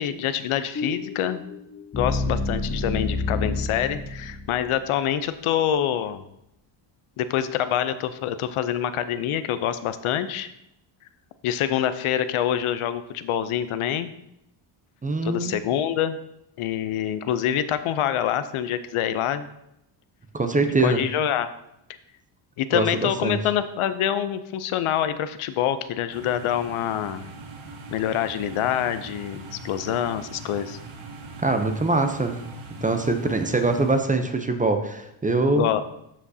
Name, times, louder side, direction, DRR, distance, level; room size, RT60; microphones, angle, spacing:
voice 1, 0.0-1.4 2.0-6.2 7.2-10.5 11.4-14.1 15.2-16.2 16.6-19.5 20.8-21.5 22.6-27.2 27.9-30.8 35.6-35.8, left 10 dB, 75° left, 12 dB, 0.7 m, -26 dB
sound 1, 0.8-4.8, left 3 dB, 25° left, 0.8 m, -29 dB
voice 2, 15.0-15.6 20.3-21.0 22.7-23.4 31.4-32.4 32.8-35.7, right 3 dB, 15° right, 6 dB, 0.6 m, -23 dB
sound 2, 26.1-34.0, right 2 dB, 70° right, 1.3 m, -41 dB
12.5 x 5.1 x 2.7 m, 0.81 s
cardioid pair, 125°, 49 cm